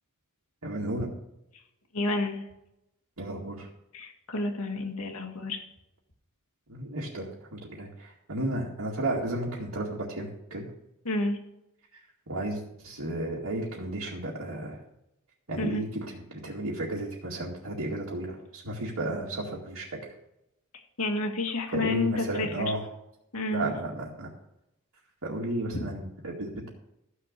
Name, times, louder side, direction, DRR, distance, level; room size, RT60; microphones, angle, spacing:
voice 1, 0.6-1.1 3.2-3.7 6.7-10.7 12.3-14.8 15.5-20.1 21.7-22.9 23.5-24.3 25.2-26.7, right 1 dB, 70° right, -4 dB, 2.1 m, -33 dB
voice 2, 1.9-2.4 3.9-5.6 11.1-11.4 15.6-15.8 21.0-22.6 23.3-23.7 25.7-25.8, left 2 dB, 70° left, 3 dB, 2.0 m, -30 dB
14.0 x 6.8 x 6.8 m, 0.86 s
head